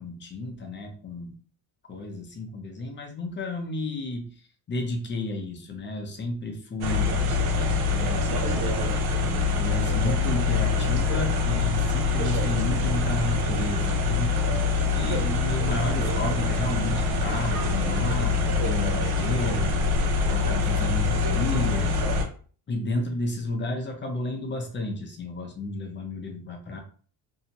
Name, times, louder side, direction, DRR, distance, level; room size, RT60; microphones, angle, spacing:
voice 1, 0.0-1.3 1.9-4.3 4.7-7.1 7.9-8.9 9.2-14.4 14.8-19.7 20.3-21.9 22.7-26.8, left 2 dB, 25° left, 3 dB, 0.6 m, -32 dB
sound 1, 6.8-22.3, left 4 dB, 60° right, 0.7 m, -25 dB
2.7 x 2.2 x 2.9 m, 0.43 s
cardioid pair, 120°, 42 cm